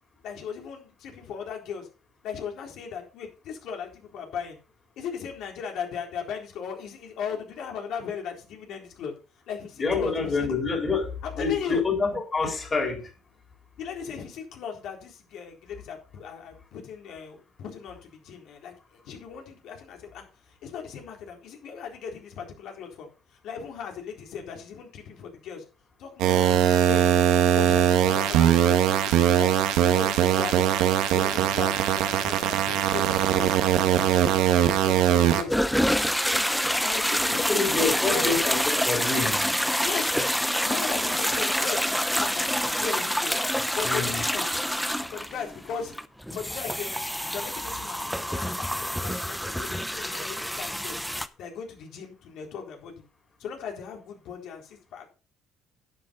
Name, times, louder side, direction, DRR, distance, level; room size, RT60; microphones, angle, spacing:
voice 1, 0.2-1.9 2.2-4.6 5.0-9.1 9.5-10.6 11.2-11.8 13.8-25.6 26.0-27.1 27.5-30.6 31.1-33.6 33.9-34.3 34.7-36.0 36.2-38.3 39.8-40.3 40.6-43.3 43.7-44.5 44.8-45.9 46.3-47.0 47.3-51.0 51.4-53.0 53.4-55.1, left 6 dB, 65° left, 4.0 m, -37 dB
voice 2, 9.8-13.1 37.5-39.4 43.8-44.2, left 4 dB, 25° left, 4.0 m, -27 dB
sound 1, 26.2-35.4, right 10 dB, 85° right, 1.7 m, -21 dB
sound 2, 35.5-51.3, equal, ahead, 0.6 m, -27 dB
11.0 x 8.5 x 4.0 m
cardioid pair, 135°, 0 cm